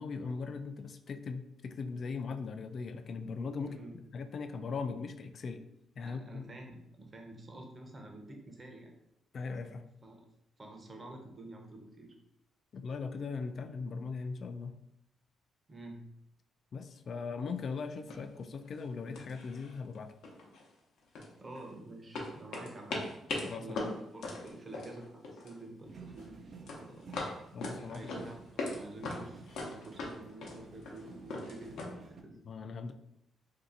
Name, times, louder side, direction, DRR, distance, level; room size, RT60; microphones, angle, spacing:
voice 1, 0.0-5.6 6.0-6.4 9.3-9.9 12.7-14.8 16.7-20.1 23.4-23.9 27.5-28.1 32.4-32.9, left 4 dB, 50° left, 8 dB, 0.3 m, -39 dB
voice 2, 3.6-4.0 6.0-8.9 10.0-10.2 10.6-12.1 15.7-16.0 21.4-23.0 23.6-27.2 27.9-32.4, right 2 dB, 30° right, 2 dB, 0.7 m, -48 dB
sound 1, 17.6-17.7 18.1-18.4 18.7-18.9 19.1-20.0 20.2-21.7 22.1-25.6 25.9-26.3 26.7-28.8 29.0-31.8, left 2 dB, 75° left, 0.8 m, -40 dB
sound 2, 25.8-32.2, right 5 dB, 55° right, 0.4 m, -53 dB
2.7 x 2.4 x 3.9 m, 0.81 s
cardioid pair, 90°, 0 cm